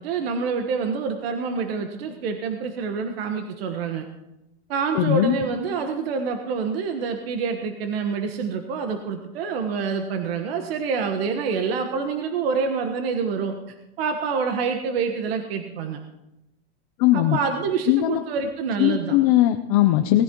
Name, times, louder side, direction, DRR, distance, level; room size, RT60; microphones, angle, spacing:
voice 1, 0.0-4.0 4.7-16.0 17.1-19.2, right 5 dB, 65° right, 5 dB, 1.3 m, -27 dB
voice 2, 5.0-5.3 17.0-17.4 17.9-18.2 18.8-20.2, left 14 dB, 35° left, 7 dB, 0.5 m, -19 dB
19.5 x 14.5 x 3.0 m, 0.93 s
supercardioid pair, 175°, 33 cm